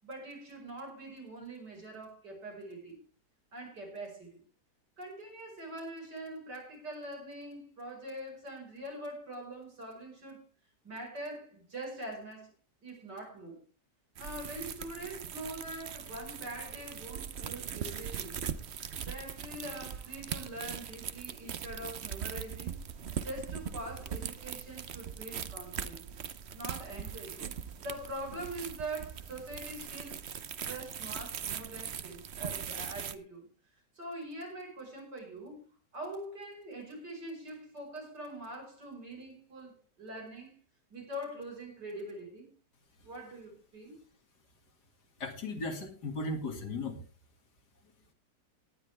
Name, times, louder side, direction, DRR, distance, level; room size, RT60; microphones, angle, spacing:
voice 1, 0.0-3.0 3.5-4.4 5.0-10.4 10.8-12.5 12.8-13.6 14.2-18.4 19.1-22.8 23.2-26.0 26.5-30.2 30.6-33.5 33.9-35.6 35.9-40.6 40.9-42.5 43.0-43.9, right 1 dB, 75° right, 5.9 m, -43 dB
sound 1, 14.2-33.2, right 8 dB, 50° right, 0.9 m, -40 dB
voice 2, 45.2-47.0, left 2 dB, 70° left, 2.8 m, -36 dB
18.5 x 10.5 x 3.4 m
omnidirectional pair, 1.8 m